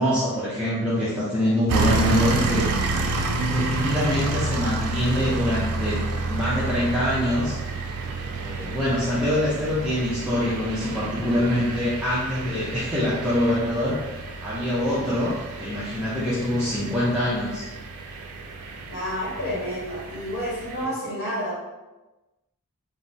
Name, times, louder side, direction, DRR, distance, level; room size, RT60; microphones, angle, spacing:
voice 1, 0.0-2.7 3.3-6.0 6.3-7.6 8.4-14.1 14.4-17.7 19.3-19.6 20.8-20.9, left 1 dB, 5° right, -11 dB, 0.5 m, -25 dB
sound 1, 1.7-20.8, right 3 dB, 85° right, 0.4 m, -29 dB
voice 2, 14.9-15.3 18.9-21.6, equal, 55° left, -8 dB, 1.0 m, -30 dB
3.4 x 2.0 x 2.6 m, 1.1 s
head